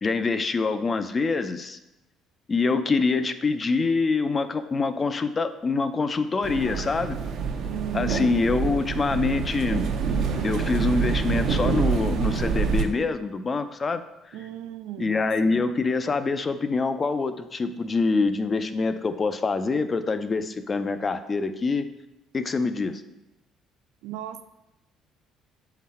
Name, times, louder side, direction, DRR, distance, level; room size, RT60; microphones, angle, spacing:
voice 1, 0.0-1.8 2.5-7.2 7.9-9.8 10.4-14.0 15.0-21.9 22.3-23.0, left 4 dB, 30° left, 10 dB, 0.4 m, -25 dB
sound 1, 6.4-12.8, right 6 dB, 60° right, 0.7 m, -26 dB
voice 2, 7.6-8.5 14.3-15.6 24.0-24.4, right 12 dB, 90° right, 11 dB, 0.4 m, -36 dB
7.3 x 3.9 x 4.2 m, 0.95 s
cardioid pair, 115°, 0 cm